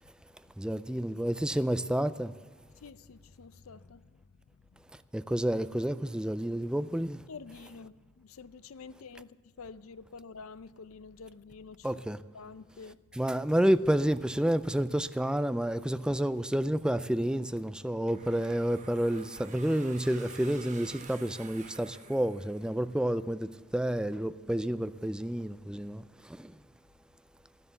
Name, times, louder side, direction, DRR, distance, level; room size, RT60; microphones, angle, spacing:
voice 1, 0.6-2.3 5.1-7.2 11.8-12.2 13.1-26.5, right 1 dB, 5° right, 0.3 m, -30 dB
voice 2, 2.8-4.2 7.3-11.9 12.3-13.0, left 4 dB, 85° left, 0.5 m, -48 dB
sound 1, 18.1-23.0, right 5 dB, 35° right, 1.0 m, -51 dB
12.5 x 11.0 x 6.8 m
head